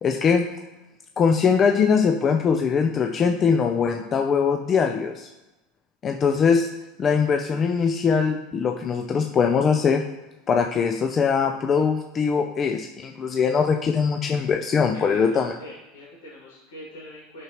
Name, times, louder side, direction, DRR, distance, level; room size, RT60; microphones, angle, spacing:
voice 1, 0.0-0.4 1.2-5.3 6.0-6.7 7.0-10.0 10.5-15.5, left 6 dB, 35° left, 5 dB, 0.5 m, -21 dB
voice 2, 14.9-17.4, left 1 dB, 80° left, -8 dB, 2.4 m, -41 dB
9.2 x 6.0 x 3.0 m, 1.0 s
hypercardioid pair, 85°, 0 cm